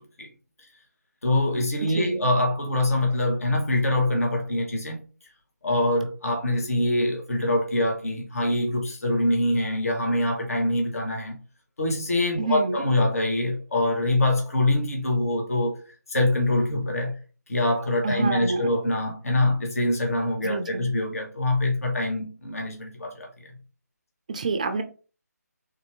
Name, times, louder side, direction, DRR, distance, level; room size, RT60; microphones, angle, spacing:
voice 1, 1.2-5.1 5.6-11.4 11.8-15.8 16.1-17.2 17.5-23.5, left 1 dB, 55° left, 1.2 m, -24 dB
voice 2, 1.8-2.3 12.4-12.8 18.0-18.7 20.4-20.9 24.3-24.8, right 3 dB, 25° right, 0.4 m, -27 dB
3.6 x 2.7 x 4.4 m
figure-of-eight pair, 155°, 9 cm